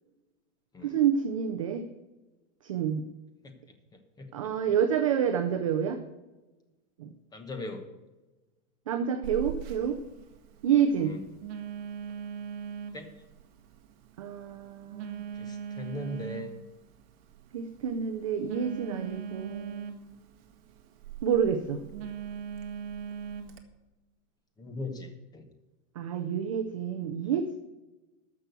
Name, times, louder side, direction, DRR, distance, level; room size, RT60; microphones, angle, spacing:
voice 1, 0.8-1.9 2.6-3.0 4.3-6.0 7.0-7.1 8.9-10.0 10.6-11.1 14.2-15.2 17.5-19.8 21.2-21.8 26.0-27.6, right 8 dB, 25° right, 7 dB, 0.3 m, -28 dB
voice 2, 4.2-4.5 7.3-7.8 11.0-11.2 12.9-13.1 15.3-16.6 24.6-25.5, left 1 dB, 10° left, 6 dB, 1.1 m, -39 dB
Telephone, 9.2-23.6, right 8 dB, 45° right, 1.5 m, -41 dB
13.5 x 6.0 x 8.1 m, 1.1 s
supercardioid pair, 155°, 44 cm